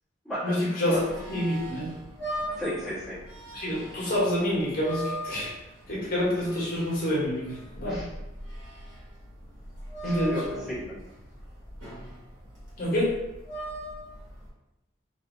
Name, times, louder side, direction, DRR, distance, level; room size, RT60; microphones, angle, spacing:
voice 1, 0.4-1.0 1.3-1.9 3.5-5.5 5.9-8.0 10.0-10.4 12.8-13.1, left 1 dB, 50° left, -7 dB, 1.1 m, -27 dB
sound 1, 0.9-14.5, right 1 dB, 70° right, 1.2 m, -40 dB
voice 2, 2.6-3.2 7.8-8.1 10.0-11.0, equal, ahead, -13 dB, 1.4 m, -34 dB
2.6 x 2.5 x 2.6 m, 0.94 s
head